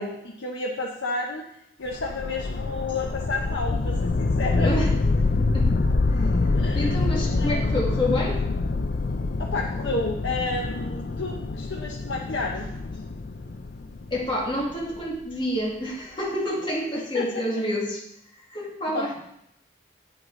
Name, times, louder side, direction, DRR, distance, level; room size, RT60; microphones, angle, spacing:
voice 1, 0.0-1.4 1.8-4.7 6.5-7.0 7.4-7.6 9.4-12.7 16.9-17.3 18.8-19.1, left 3 dB, 85° left, -1 dB, 0.9 m, -31 dB
sound 1, 1.9-15.0, left 3 dB, 55° left, 0.5 m, -26 dB
voice 2, 4.6-4.9 5.4-5.8 6.1-6.3 6.7-8.4 14.1-18.0 18.5-19.1, left 1 dB, 25° left, -3 dB, 2.0 m, -28 dB
9.2 x 8.0 x 3.8 m, 0.78 s
head